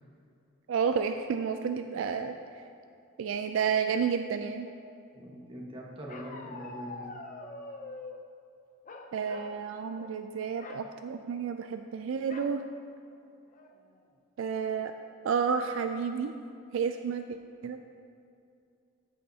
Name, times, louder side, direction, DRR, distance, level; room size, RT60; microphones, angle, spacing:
voice 1, 0.7-2.3 3.2-4.7 9.1-12.6 14.4-14.9 15.2-16.3 16.7-17.4 17.6-17.8, right 6 dB, 70° right, 7 dB, 0.3 m, -30 dB
voice 2, 5.1-7.2, equal, 25° right, -3 dB, 1.3 m, -42 dB
Bark, 6.1-8.2 8.9-9.6 9.9-10.2 10.5-10.9 12.3-12.6 13.1-13.2 13.5-14.0, left 3 dB, 40° left, 0.5 m, -44 dB
14.0 x 6.4 x 2.8 m, 2.5 s
head